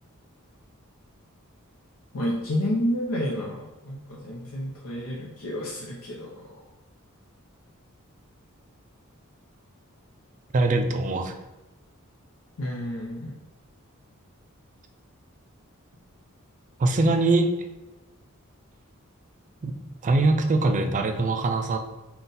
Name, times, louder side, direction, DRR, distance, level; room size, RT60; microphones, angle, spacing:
voice 1, 2.1-6.6 12.6-13.3, equal, 85° left, -3 dB, 0.7 m, -30 dB
voice 2, 10.5-11.4 16.8-17.6 19.6-19.8 20.0-21.8, right 2 dB, 35° right, 6 dB, 0.4 m, -22 dB
3.9 x 2.3 x 3.9 m, 1.0 s
head